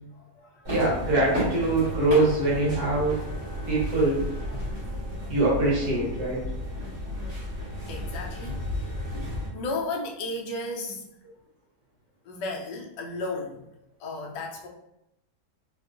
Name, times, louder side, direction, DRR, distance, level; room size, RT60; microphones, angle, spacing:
voice 1, 0.2-0.7 7.9-8.6 9.1-11.1 12.2-13.7 14.0-14.7, left 2 dB, 85° left, 0 dB, 1.2 m, -34 dB
sound 1, 0.6-9.5, equal, 40° right, 1.5 m, -33 dB
voice 2, 0.7-3.2 3.7-4.3 5.3-6.4, right 2 dB, 70° right, -5 dB, 1.4 m, -23 dB
3.6 x 2.4 x 2.4 m, 0.83 s
omnidirectional pair, 1.8 m